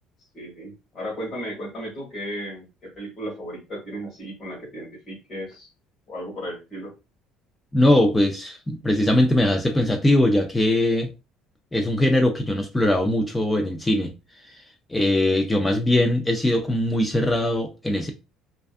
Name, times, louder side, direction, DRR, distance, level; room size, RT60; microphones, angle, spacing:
voice 1, 0.3-5.7 6.1-6.9, equal, 35° left, 1.2 m, -35 dB
voice 2, 7.7-11.1 11.7-14.1 14.5-14.6 14.9-18.1, left 1 dB, 10° left, 0.3 m, -21 dB
2.5 x 2.3 x 2.3 m
cardioid pair, 130°, 0 cm